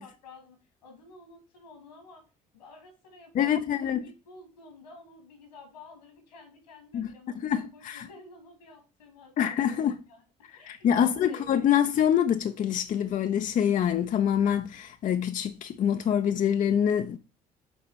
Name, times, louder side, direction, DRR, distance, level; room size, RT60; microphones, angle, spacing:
voice 1, 0.0-2.2 2.5-10.2 10.5-11.5, left 3 dB, 80° left, 2.0 m, -51 dB
voice 2, 3.3-4.0 6.9-7.1 7.4-8.1 9.4-10.0 10.7-17.2, left 9 dB, 40° left, 0.5 m, -25 dB
6.8 x 4.2 x 4.2 m
figure-of-eight pair, 50°, 21 cm